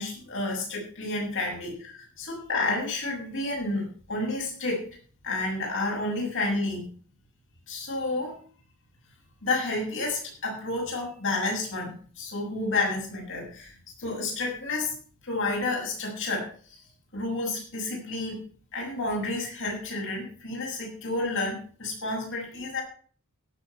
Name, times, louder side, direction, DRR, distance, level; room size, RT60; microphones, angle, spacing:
voice 1, 0.0-1.7 2.2-4.9 5.2-6.8 7.7-8.4 9.4-14.9 15.2-16.5 17.1-18.4 18.7-22.8, left 2 dB, 60° left, -1 dB, 7.1 m, -30 dB
17.0 x 7.6 x 5.8 m, 0.44 s
head